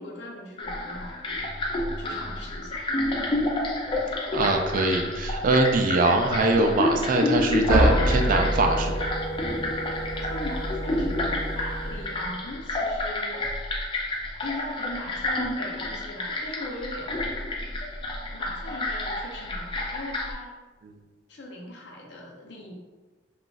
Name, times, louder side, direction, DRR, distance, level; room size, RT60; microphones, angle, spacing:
voice 1, 0.0-1.5 2.0-2.9 10.1-13.4 14.4-17.2 18.3-20.5 21.3-22.7, left 1 dB, 65° left, -2 dB, 0.7 m, -39 dB
sound 1, 0.6-20.3, left 2 dB, 25° left, 0.4 m, -30 dB
voice 2, 4.3-9.1, right 2 dB, 45° right, 4 dB, 0.3 m, -23 dB
sound 2, 7.7-12.4, right 1 dB, 15° right, 0.8 m, -27 dB
2.4 x 2.4 x 3.8 m, 1.3 s
head